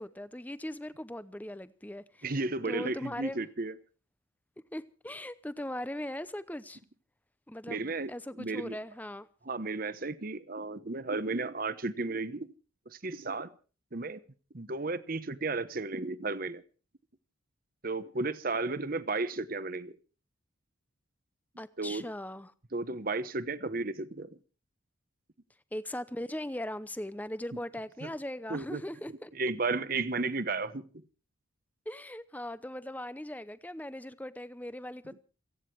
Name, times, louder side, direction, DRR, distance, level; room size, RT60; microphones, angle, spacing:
voice 1, 0.0-2.3 2.6-3.5 4.7-6.8 7.5-9.3 21.6-22.5 25.7-29.3 31.9-35.2, left 1 dB, 10° left, 0.7 m, -39 dB
voice 2, 2.2-3.7 7.7-8.1 8.4-8.8 9.5-12.5 12.9-13.5 13.9-14.2 14.5-16.6 17.8-20.0 21.8-22.0 22.7-24.3 28.0-28.1 28.5-28.8 29.4-30.8, right 3 dB, 45° right, 1.0 m, -33 dB
29.0 x 9.8 x 4.7 m
head